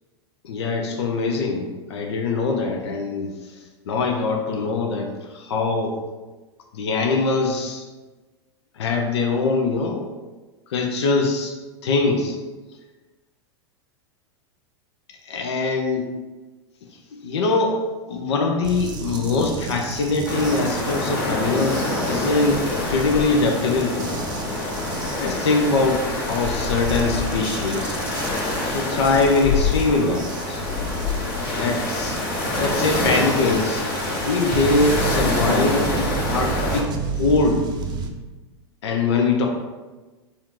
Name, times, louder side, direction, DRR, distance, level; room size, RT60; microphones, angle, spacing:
voice 1, 0.4-3.3 3.9-6.0 6.7-7.8 8.8-10.1 10.7-11.6 11.8-12.4 15.3-16.1 17.1-24.1 25.2-28.0 28.7-30.6 31.6-32.2 32.6-33.9 34.2-37.6 38.8-39.5, left 3 dB, 75° left, 3 dB, 0.6 m, -22 dB
sound 1, 18.6-38.1, right 5 dB, 30° right, 0.5 m, -33 dB
sound 2, 20.2-36.8, left 2 dB, 60° left, 1.3 m, -26 dB
4.2 x 2.5 x 4.4 m, 1.2 s
hypercardioid pair, 100°, 14 cm